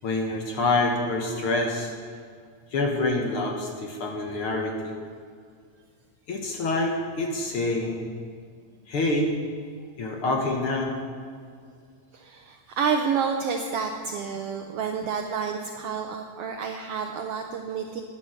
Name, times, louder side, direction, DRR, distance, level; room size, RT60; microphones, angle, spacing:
voice 1, 0.0-1.9 2.7-4.9 6.3-8.1 8.9-9.4 10.0-10.9, left 2 dB, 55° left, 2 dB, 1.8 m, -26 dB
voice 2, 12.1-18.0, right 6 dB, 75° right, 4 dB, 1.4 m, -29 dB
11.5 x 10.0 x 6.3 m, 2.1 s
omnidirectional pair, 3.4 m